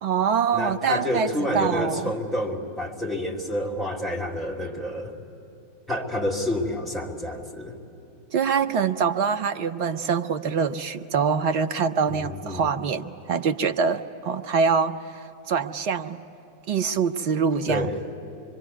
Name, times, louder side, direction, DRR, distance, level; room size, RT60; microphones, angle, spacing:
voice 1, 0.0-1.3 1.5-2.1 8.3-15.0 15.5-16.2 16.7-17.9, right 6 dB, 45° right, 10 dB, 0.7 m, -24 dB
voice 2, 0.5-5.2 5.9-7.8 12.1-12.6 17.7-18.0, left 1 dB, 5° right, -3 dB, 2.7 m, -29 dB
25.0 x 23.5 x 9.5 m, 2.7 s
figure-of-eight pair, 90°, 0 cm